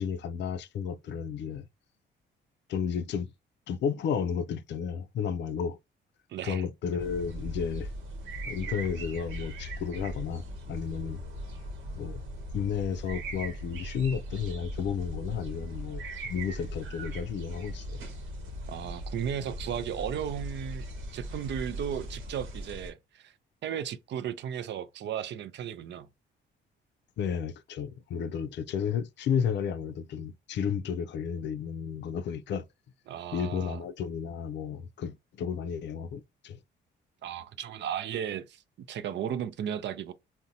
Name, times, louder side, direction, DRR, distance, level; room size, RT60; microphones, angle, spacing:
voice 1, 0.0-1.7 2.7-3.3 3.7-5.8 6.4-7.9 8.5-11.2 11.9-12.2 12.5-18.0 27.2-32.7 33.3-36.6, left 7 dB, 65° left, 0.4 m, -32 dB
voice 2, 6.3-6.6 18.7-20.9 21.1-23.3 23.6-26.1 33.1-33.8 37.2-40.1, right 9 dB, 65° right, 0.5 m, -35 dB
sound 1, 7.0-22.9, right 1 dB, 90° right, 1.0 m, -39 dB
3.8 x 2.1 x 2.7 m
cardioid pair, 90°, 20 cm